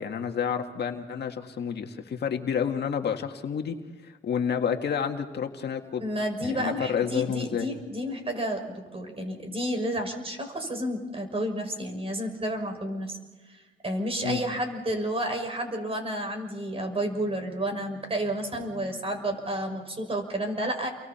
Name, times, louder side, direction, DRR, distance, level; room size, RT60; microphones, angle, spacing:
voice 1, 0.0-3.8 4.0-6.0 6.4-7.7 14.2-14.4, left 7 dB, 55° left, 4 dB, 1.8 m, -29 dB
voice 2, 6.0-8.6 8.9-13.2 13.5-20.9, right 1 dB, 30° right, 4 dB, 6.2 m, -31 dB
30.0 x 24.0 x 4.4 m, 1.3 s
cardioid pair, 90°, 20 cm